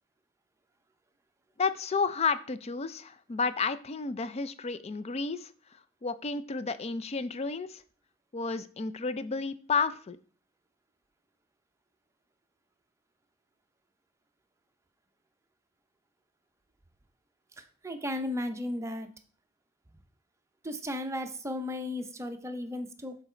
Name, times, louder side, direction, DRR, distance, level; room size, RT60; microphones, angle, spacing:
voice 1, 1.6-7.8 8.3-10.2, left 4 dB, 30° left, 13 dB, 0.4 m, -32 dB
voice 2, 17.6-19.1 20.6-23.2, left 1 dB, 15° right, 6 dB, 0.7 m, -35 dB
7.0 x 3.9 x 4.4 m, 0.41 s
head